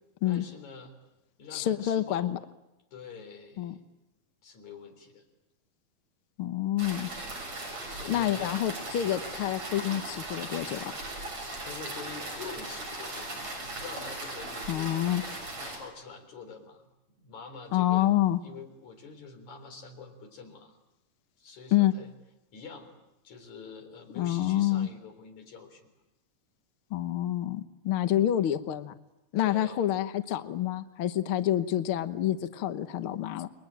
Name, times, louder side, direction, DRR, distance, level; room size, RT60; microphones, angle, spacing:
voice 1, 0.2-0.9 1.4-2.3 2.9-3.8 4.4-5.2 7.5-8.5 11.6-14.9 15.6-16.9 17.2-18.1 18.4-20.8 21.4-22.1 22.5-22.9 23.2-25.9 29.4-29.8, left 5 dB, 55° left, 6 dB, 5.2 m, -46 dB
voice 2, 1.5-2.4 3.6-3.7 6.4-7.1 8.1-11.0 14.7-15.2 17.7-18.4 21.7-21.9 24.2-24.9 26.9-28.9 29.3-33.5, left 12 dB, 85° left, 10 dB, 1.1 m, -28 dB
sound 1, 6.8-15.8, right 2 dB, 50° right, 8.3 m, -38 dB
29.5 x 22.5 x 9.0 m, 0.97 s
omnidirectional pair, 4.1 m